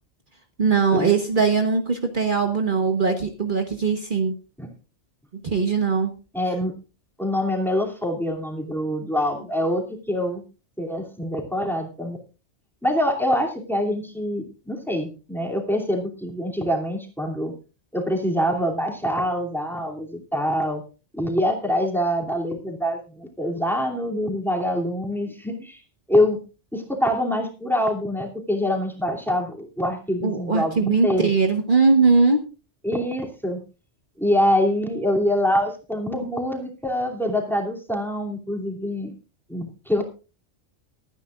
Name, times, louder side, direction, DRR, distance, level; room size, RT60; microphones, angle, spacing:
voice 1, 0.6-4.3 5.4-6.1 30.2-32.4, right 4 dB, 45° right, 5 dB, 1.4 m, -20 dB
voice 2, 6.3-6.7 7.2-10.4 10.8-12.2 12.8-17.5 17.9-20.8 21.1-25.8 26.1-26.4 26.7-31.3 32.8-33.6 34.2-39.1 39.5-40.0, left 1 dB, ahead, 1 dB, 2.7 m, -25 dB
24.0 x 9.7 x 2.4 m, 0.33 s
omnidirectional pair, 1.2 m